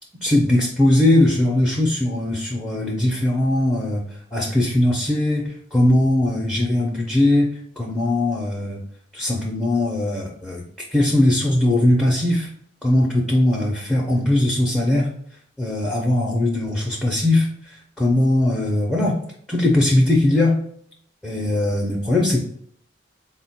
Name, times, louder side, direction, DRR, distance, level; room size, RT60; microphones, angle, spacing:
voice 1, 0.2-8.8 9.1-12.5 12.8-15.1 15.6-19.2 19.5-20.6 21.2-22.4, left 1 dB, 5° left, -3 dB, 0.5 m, -20 dB
4.3 x 2.1 x 4.1 m, 0.65 s
head